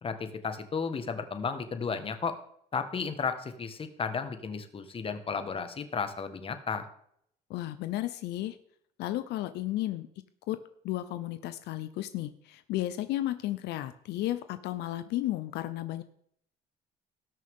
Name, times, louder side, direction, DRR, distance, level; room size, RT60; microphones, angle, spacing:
voice 1, 0.0-2.4 2.7-6.8, left 5 dB, 35° left, 9 dB, 1.5 m, -33 dB
voice 2, 7.5-8.6 9.0-10.1 10.5-10.6 10.8-16.0, left 14 dB, 80° left, 12 dB, 0.7 m, -33 dB
18.5 x 6.5 x 3.6 m, 0.69 s
cardioid pair, 110°, 17 cm